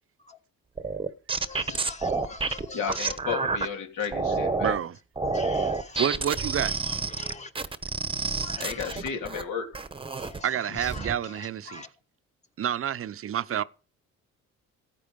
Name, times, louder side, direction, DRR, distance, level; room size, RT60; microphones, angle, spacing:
sound 1, 0.8-3.7 4.1-4.8 5.2-9.4 9.7-10.4 10.8-11.1, right 4 dB, 15° right, 1.0 m, -29 dB
voice 1, 1.5-3.2 5.3-6.0 6.6-7.5 8.3-9.0 10.2-11.9, left 3 dB, 20° left, 1.4 m, -44 dB
voice 2, 2.7-4.8 8.6-9.7, left 6 dB, 75° left, 3.0 m, -33 dB
voice 3, 4.6-5.0 6.0-6.7 10.4-11.8 12.6-13.6, right 10 dB, 45° right, 0.7 m, -28 dB
14.5 x 9.1 x 5.2 m
cardioid pair, 105°, 32 cm